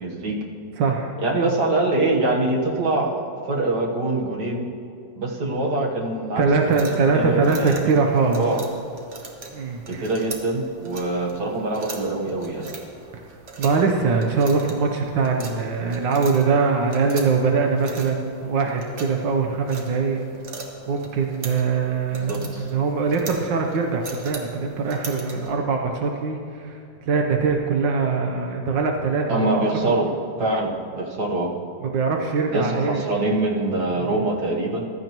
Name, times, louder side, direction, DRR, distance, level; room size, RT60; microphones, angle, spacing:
voice 1, 0.0-0.4 1.2-4.7 5.2-6.5 7.1-7.8 8.3-8.6 9.9-12.7 22.2-22.7 29.3-30.1 30.4-31.5 32.5-34.8, right 2 dB, 65° right, 0 dB, 1.8 m, -24 dB
voice 2, 0.8-1.1 6.4-8.5 9.5-10.0 13.6-20.2 20.9-29.7 31.8-33.0 33.9-34.2, right 4 dB, 80° right, 2 dB, 1.5 m, -22 dB
sound 1, 6.6-25.5, right 3 dB, 45° right, 1.3 m, -40 dB
15.0 x 12.0 x 3.0 m, 2.3 s
omnidirectional pair, 1.9 m